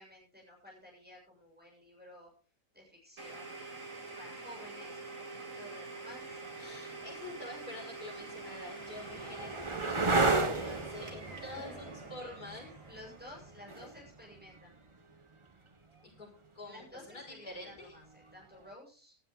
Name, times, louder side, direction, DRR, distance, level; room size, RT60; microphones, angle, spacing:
voice 1, 0.0-2.3 2.7-3.8 4.2-6.6 11.5-14.8 16.7-19.2, left 1 dB, 5° right, -2 dB, 7.6 m, -53 dB
Domestic sounds home sounds, 3.2-14.8, right 3 dB, 60° right, 3.5 m, -46 dB
voice 2, 6.6-12.7 16.0-18.0, left 2 dB, 85° left, -1 dB, 7.1 m, -47 dB
sound 1, 6.9-7.0 7.8-15.4 17.8-18.3, right 3 dB, 20° right, 1.0 m, -34 dB
17.5 x 12.5 x 3.9 m, 0.37 s
omnidirectional pair, 1.6 m